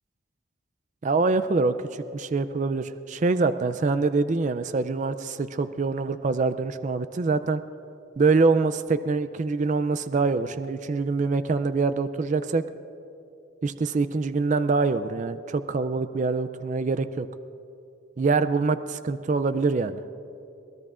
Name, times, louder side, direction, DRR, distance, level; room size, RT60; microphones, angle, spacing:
voice 1, 1.0-7.6 8.2-12.6 13.6-17.3 18.2-20.0, right 4 dB, 40° right, 11 dB, 0.3 m, -25 dB
24.0 x 17.5 x 2.5 m, 2.8 s
head